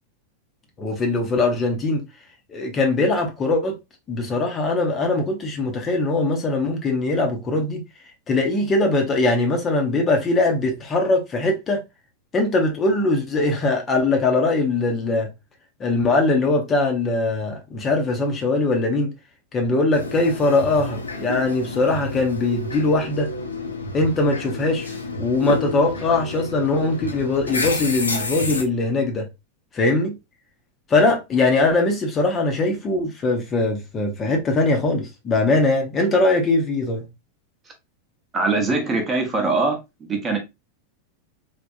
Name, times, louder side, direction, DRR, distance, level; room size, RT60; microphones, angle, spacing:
voice 1, 0.8-2.0 2.5-3.8 4.1-7.8 8.3-11.8 12.3-15.3 15.8-19.1 19.5-23.3 23.9-24.9 25.2-29.3 29.7-30.2 30.9-37.1, left 2 dB, 25° left, 0.6 m, -21 dB
sound 1, 19.9-28.6, left 2 dB, 75° left, 0.5 m, -30 dB
voice 2, 38.3-40.4, right 3 dB, 20° right, 0.8 m, -22 dB
3.4 x 2.1 x 2.4 m
figure-of-eight pair, 90°, 0 cm